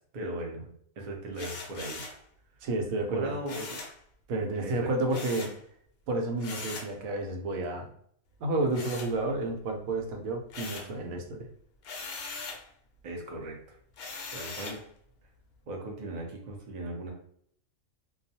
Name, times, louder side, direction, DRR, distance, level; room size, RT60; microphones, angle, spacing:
voice 1, 0.1-2.0 3.1-3.8 4.6-4.9 13.0-13.8 14.3-14.8 15.7-17.1, right 1 dB, 50° right, 0 dB, 0.5 m, -38 dB
sound 1, 1.3-2.2 3.5-4.0 5.1-5.6 6.4-6.9 8.7-9.6 10.0-11.0 11.8-12.7 14.0-14.8, left 4 dB, 65° left, 0.6 m, -40 dB
voice 2, 2.6-3.3 4.3-5.5 6.1-7.9 8.4-11.5, right 2 dB, 80° right, 2 dB, 1.0 m, -30 dB
2.3 x 2.3 x 2.7 m, 0.64 s
omnidirectional pair, 1.4 m